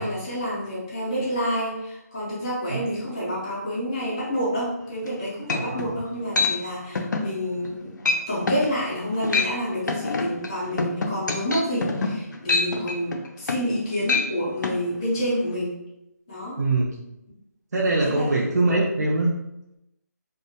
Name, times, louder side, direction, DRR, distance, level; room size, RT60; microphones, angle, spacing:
voice 1, 0.0-8.0 8.3-15.8 16.3-16.6 18.0-18.3, equal, 15° left, -8 dB, 0.3 m, -28 dB
sound 1, 5.0-5.1 5.5-5.9 6.4-6.5 7.0-7.3 7.6-7.8 8.1-8.2 8.5-8.7 9.1-9.5 9.9-13.8 14.0-14.3 14.6-14.8, left 4 dB, 80° left, 0.4 m, -25 dB
voice 2, 16.6-16.9 17.7-19.3, right 2 dB, 65° right, -4 dB, 0.5 m, -22 dB
2.3 x 2.1 x 2.8 m, 0.88 s
hypercardioid pair, 175°, 10 cm